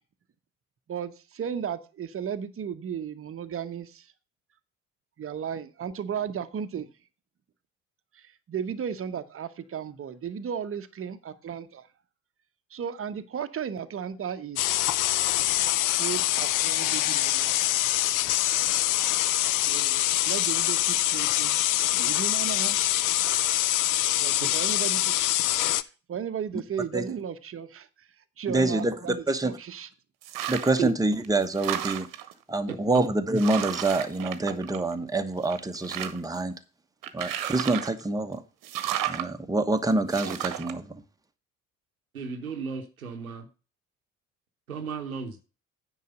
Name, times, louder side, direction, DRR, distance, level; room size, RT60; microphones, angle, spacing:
voice 1, 0.9-4.1 5.2-6.9 8.1-8.2 8.5-11.9 12.7-14.8 15.9-18.3 19.5-21.6 21.9-23.0 24.2-25.4 26.1-27.9 28.4-29.9, right 8 dB, 30° right, 1.0 m, -35 dB
sound 1, 14.6-25.8, left 15 dB, 50° left, 0.6 m, -25 dB
voice 2, 28.5-29.5 30.5-32.1 32.5-36.5 37.1-38.4 39.1-41.0, right 2 dB, 10° right, 1.2 m, -26 dB
sound 2, 30.2-30.9 31.2-32.3 32.9-33.0 33.4-35.1 35.4-36.4 37.0-38.0 38.6-39.3 40.1-40.7, right 12 dB, 50° right, 1.2 m, -33 dB
voice 3, 32.7-33.0 42.1-43.5 44.7-45.4, right 6 dB, 90° right, 1.0 m, -34 dB
9.4 x 4.9 x 6.5 m
figure-of-eight pair, 50°, 41 cm